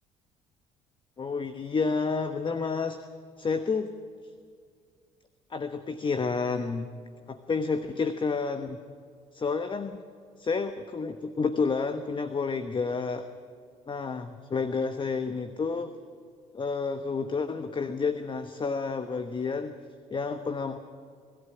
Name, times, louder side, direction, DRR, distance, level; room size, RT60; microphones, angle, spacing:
voice 1, 1.2-3.0 3.4-3.9 5.5-6.9 7.3-8.8 9.3-10.0 10.4-13.3 13.9-15.9 16.5-19.8 20.1-20.8, left 4 dB, 30° left, 9 dB, 1.2 m, -30 dB
24.5 x 13.0 x 9.7 m, 2.1 s
hypercardioid pair, 55°, 15 cm